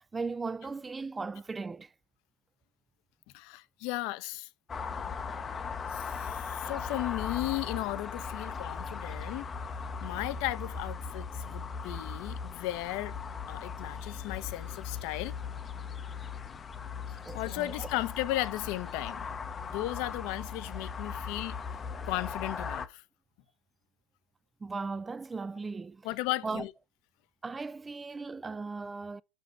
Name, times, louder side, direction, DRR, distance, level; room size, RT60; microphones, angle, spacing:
voice 1, 0.1-1.9 17.3-17.9 24.6-26.0 26.4-26.6 27.4-29.2, right 4 dB, 15° right, 0.3 m, -37 dB
voice 2, 3.3-4.5 5.9-9.5 10.0-13.1 13.5-15.3 17.3-19.3 19.6-21.6 22.1-23.0 26.0-26.7, left 17 dB, 55° left, 0.7 m, -35 dB
sound 1, 4.7-22.9, left 5 dB, 20° left, 0.7 m, -38 dB
5.8 x 5.4 x 6.1 m
hypercardioid pair, 105°, 0 cm